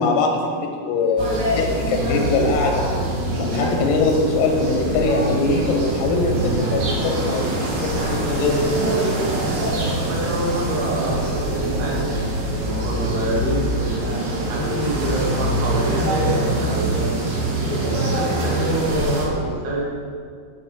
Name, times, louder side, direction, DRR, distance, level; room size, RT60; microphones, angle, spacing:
voice 1, 0.0-2.9 3.4-8.7, left 3 dB, 85° left, 1 dB, 3.8 m, -22 dB
sound 1, 1.2-19.3, right 1 dB, 85° right, 5.6 m, -23 dB
voice 2, 9.9-12.2 12.6-17.2 18.0-19.8, right 1 dB, 60° right, -4 dB, 3.8 m, -27 dB
11.5 x 6.0 x 8.7 m, 2.1 s
omnidirectional pair, 6.0 m